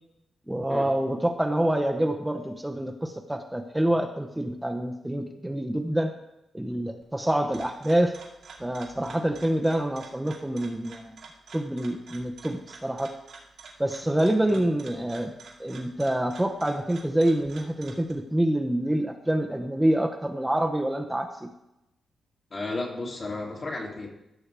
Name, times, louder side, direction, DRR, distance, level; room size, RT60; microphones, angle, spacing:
voice 1, 0.5-6.1 6.5-8.1 8.6-11.2 11.5-13.1 13.8-15.3 15.6-21.5, right 1 dB, 10° right, 5 dB, 0.8 m, -26 dB
sound 1, 7.0-18.1, right 4 dB, 80° right, 2.1 m, -48 dB
voice 2, 22.5-24.1, left 2 dB, 45° left, -1 dB, 2.4 m, -33 dB
15.0 x 6.3 x 3.4 m, 0.88 s
cardioid pair, 65°, 0 cm